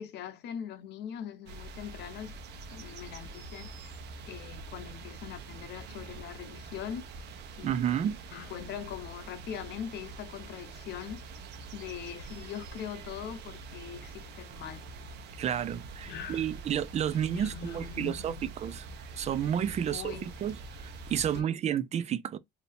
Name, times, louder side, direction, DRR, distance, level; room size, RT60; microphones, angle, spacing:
voice 1, 0.0-2.3 2.7-3.7 4.3-7.0 7.6-11.2 11.7-14.9 16.0-16.5 17.1-18.5 19.9-20.3 21.3-21.6, left 9 dB, 65° left, 0.7 m, -42 dB
sound 1, 1.5-21.4, right 3 dB, 65° right, 1.0 m, -45 dB
voice 2, 7.6-8.2 15.4-18.9 19.2-20.6 21.1-22.4, right 9 dB, 35° right, 0.4 m, -31 dB
4.3 x 2.8 x 3.3 m
cardioid pair, 170°, 19 cm